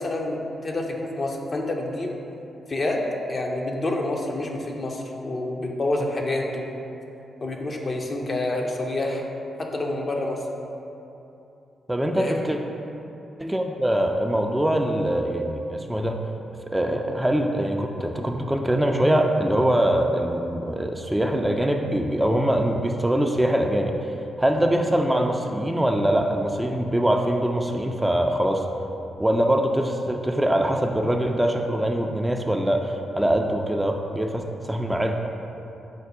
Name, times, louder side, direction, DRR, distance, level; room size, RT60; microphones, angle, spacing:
voice 1, 0.0-2.1 2.7-3.0 3.3-6.7 7.4-9.2 9.6-10.4 12.1-12.4 16.9-17.0 24.6-24.7, left 2 dB, 45° left, 0 dB, 0.6 m, -28 dB
voice 2, 11.9-12.6 13.4-16.2 16.7-23.9 24.4-28.6 29.2-35.2, right 1 dB, 10° right, 2 dB, 0.4 m, -23 dB
5.2 x 2.1 x 4.8 m, 2.9 s
hypercardioid pair, 45°, 0 cm